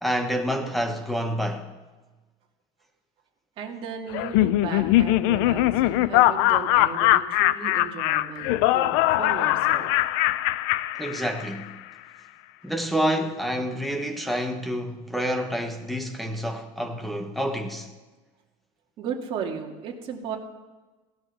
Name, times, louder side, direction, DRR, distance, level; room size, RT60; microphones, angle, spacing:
voice 1, 0.0-1.7 11.0-11.7 12.6-17.9, equal, ahead, 1.3 m, -28 dB
voice 2, 3.6-9.9 19.0-20.4, right 6 dB, 45° right, 2.3 m, -35 dB
Laughter, 4.1-11.6, left 16 dB, 80° left, 0.6 m, -22 dB
17.0 x 11.0 x 6.7 m
cardioid pair, 155°, 13 cm